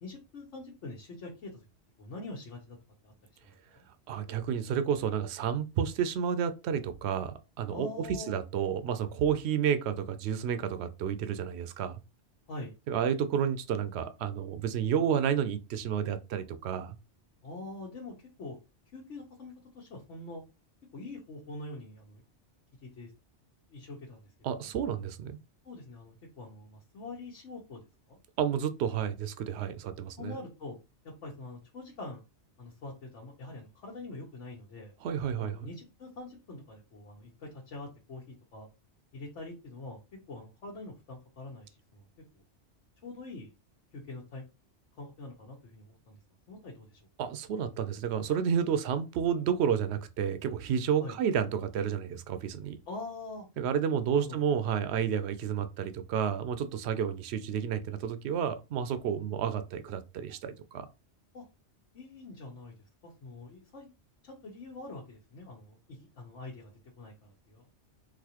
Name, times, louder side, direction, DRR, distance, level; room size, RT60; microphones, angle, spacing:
voice 1, 0.0-1.6 2.0-2.8 3.0-3.1 3.4-3.8 7.7-8.4 12.5-12.7 17.4-18.6 18.9-20.4 20.9-22.2 22.8-23.1 23.7-24.3 24.6-24.7 25.6-28.2 30.2-30.8 31.0-32.2 32.6-34.9 35.4-38.7 39.1-40.0 40.3-42.1 42.3-42.4 43.0-43.5 43.9-44.4 45.0-46.2 46.5-47.0 51.0-51.2 52.9-53.5 54.1-54.4 61.3-61.4 61.9-63.9 64.2-66.7 67.0-67.7, left 2 dB, 80° left, 1.3 m, -44 dB
voice 2, 4.1-12.0 12.9-17.0 24.4-25.4 28.4-30.4 35.0-35.7 47.2-52.8 53.6-60.9, right 8 dB, 70° right, 0.8 m, -31 dB
4.0 x 2.6 x 2.9 m
omnidirectional pair, 1.2 m